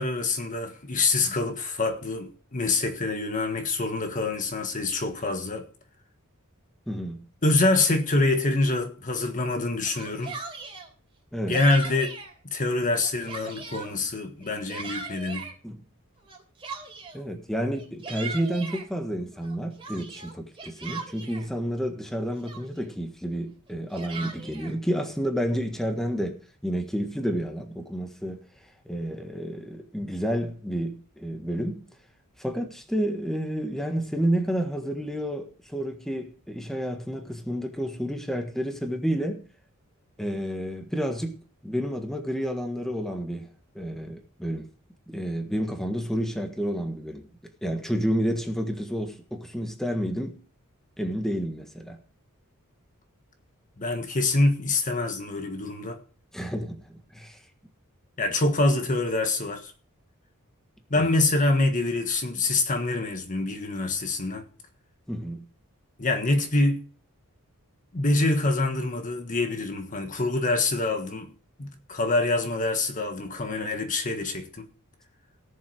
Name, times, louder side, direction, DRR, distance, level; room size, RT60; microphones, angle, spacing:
voice 1, 0.0-5.7 7.4-10.4 11.5-12.1 12.4-15.5 53.8-56.0 58.2-59.7 60.9-64.5 66.0-66.9 67.9-71.3 71.6-74.7, left 2 dB, 35° left, 1.5 m, -25 dB
voice 2, 6.9-7.2 11.3-11.6 15.6-15.8 17.1-28.4 28.8-31.8 32.4-39.4 40.2-43.5 43.7-44.7 45.1-47.3 47.6-50.4 51.0-52.0 56.3-57.4 60.9-61.1 65.1-65.4, equal, ahead, 1.5 m, -30 dB
Yell, 9.8-10.9 11.5-12.3 12.8-13.9 14.4-15.5 16.3-17.2 17.8-18.9 19.4-21.5 22.1-22.2 22.4-22.9 23.7-24.7, right 4 dB, 25° right, 3.6 m, -39 dB
18.0 x 7.4 x 4.8 m
head